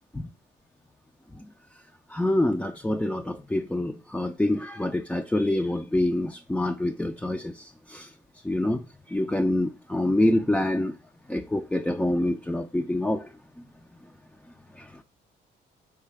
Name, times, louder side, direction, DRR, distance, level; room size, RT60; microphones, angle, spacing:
voice 1, 2.1-8.1 8.4-11.0 11.3-13.3 14.8-15.0, left 1 dB, 5° left, 0.3 m, -26 dB
4.7 x 3.2 x 3.2 m
cardioid pair, 90°, 20 cm